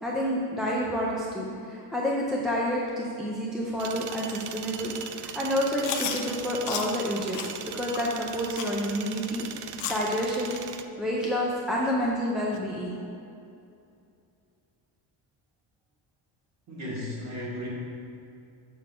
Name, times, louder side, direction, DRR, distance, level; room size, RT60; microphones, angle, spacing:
voice 1, 0.0-7.4 7.7-10.5 11.0-13.0, equal, ahead, -4 dB, 0.4 m, -29 dB
sound 1, 3.8-10.8, right 9 dB, 70° right, 0.5 m, -39 dB
Chewing mastication, 5.8-6.2 6.7-6.9 7.3-7.5 7.9-8.1 8.6-8.7 9.2-9.3 9.8-10.1 10.5-10.6 11.2-11.3 11.8-11.9 12.5-12.6, left 9 dB, 85° left, 0.8 m, -33 dB
voice 2, 16.7-17.7, left 1 dB, 40° right, -5 dB, 1.8 m, -35 dB
7.1 x 6.8 x 3.6 m, 2.6 s
cardioid pair, 175°, 42 cm